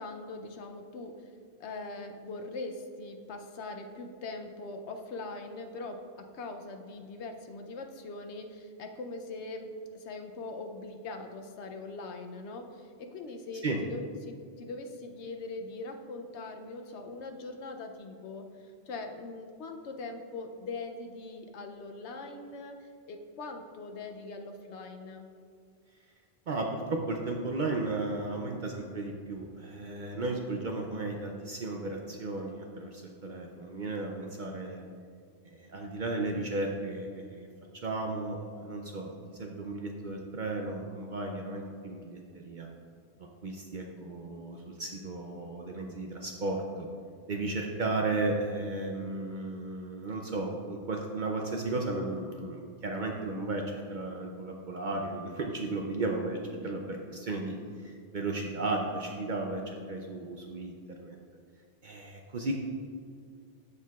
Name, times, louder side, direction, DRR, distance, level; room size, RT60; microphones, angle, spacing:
voice 1, 0.0-1.3 1.6-25.3 56.5-56.8, left 3 dB, 70° left, 5 dB, 0.9 m, -42 dB
voice 2, 26.5-34.8 35.4-37.5 37.8-42.7 43.4-46.9 47.3-56.4 56.6-57.6 57.8-60.7 61.0-61.1 61.8-62.7, right 2 dB, 55° right, 1 dB, 0.5 m, -34 dB
13.5 x 4.6 x 2.3 m, 2.2 s
omnidirectional pair, 1.2 m